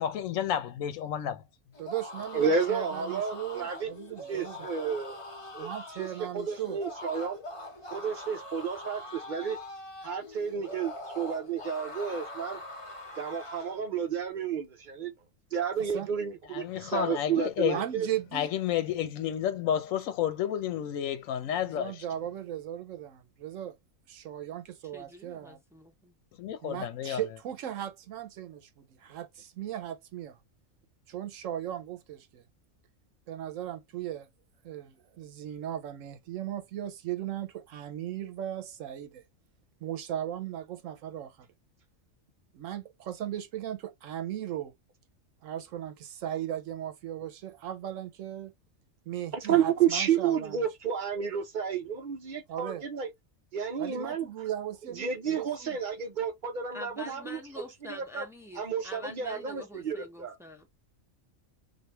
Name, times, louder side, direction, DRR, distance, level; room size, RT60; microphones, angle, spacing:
voice 1, 0.0-1.4 16.5-17.8 18.3-22.0 26.4-27.2, left 10 dB, 80° left, 1.0 m, -31 dB
sound 1, 1.7-13.8, left 2 dB, 35° left, 0.6 m, -43 dB
voice 2, 1.8-4.7 5.6-6.8 15.9-16.1 17.6-18.5 21.7-23.8 24.1-25.6 26.6-30.4 31.1-32.4 33.3-34.3 34.6-39.2 39.8-41.5 42.5-44.7 45.4-48.5 49.1-50.7 52.5-52.8 53.8-55.8, right 11 dB, 80° right, 0.9 m, -37 dB
voice 3, 2.3-3.9 4.3-5.2 5.5-5.7 6.0-7.4 7.9-9.6 10.0-12.6 13.2-15.1 15.5-18.1 49.3-53.1 53.5-54.3 55.0-57.4 57.9-58.2 58.6-60.4, right 7 dB, 60° right, 0.5 m, -31 dB
voice 4, 24.9-26.1 56.7-60.7, left 2 dB, 5° right, 0.5 m, -46 dB
3.2 x 2.5 x 2.9 m
omnidirectional pair, 1.4 m